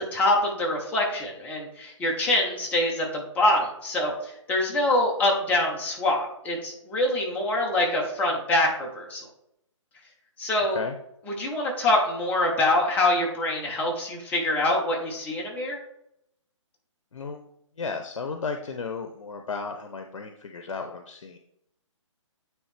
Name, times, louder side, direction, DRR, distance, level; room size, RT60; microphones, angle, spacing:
voice 1, 0.0-4.1 4.5-9.2 10.4-10.8 11.4-15.8, left 1 dB, 10° left, -1 dB, 0.9 m, -25 dB
voice 2, 17.1-17.4 17.8-21.4, left 4 dB, 90° left, 5 dB, 0.6 m, -34 dB
9.2 x 3.2 x 3.3 m, 0.77 s
hypercardioid pair, 155°, 16 cm